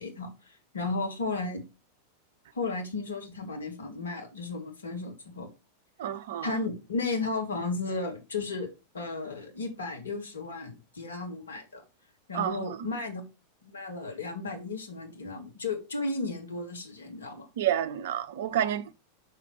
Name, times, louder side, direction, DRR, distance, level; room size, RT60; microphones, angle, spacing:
voice 1, 0.0-1.6 2.5-5.5 6.4-11.8 12.3-13.2 13.6-17.5, left 3 dB, 70° left, 1.9 m, -34 dB
voice 2, 6.0-6.5 12.3-12.8 17.6-18.9, right 10 dB, 55° right, 0.6 m, -29 dB
6.3 x 5.8 x 3.1 m
figure-of-eight pair, 90°, 0 cm